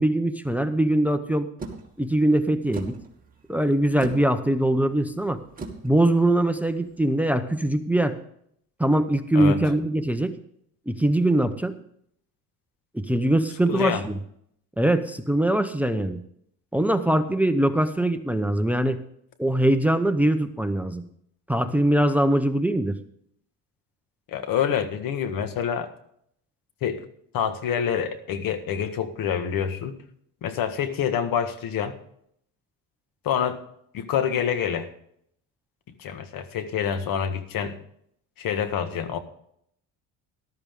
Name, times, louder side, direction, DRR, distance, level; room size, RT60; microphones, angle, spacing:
voice 1, 0.0-1.5 2.0-3.0 3.5-5.4 5.8-8.2 8.8-10.4 10.9-11.8 12.9-14.1 14.8-16.2 16.7-19.0 19.4-21.0 21.5-23.0, right 1 dB, 5° right, 11 dB, 0.7 m, -22 dB
sound 1, 1.6-7.2, right 3 dB, 25° right, 2.5 m, -41 dB
voice 2, 13.7-14.0 24.3-25.9 26.8-27.0 27.3-30.0 30.4-32.0 33.2-33.6 33.9-34.9 36.0-37.8 38.4-39.2, left 8 dB, 65° left, 9 dB, 1.7 m, -27 dB
13.5 x 12.5 x 3.7 m, 0.69 s
cardioid pair, 110°, 36 cm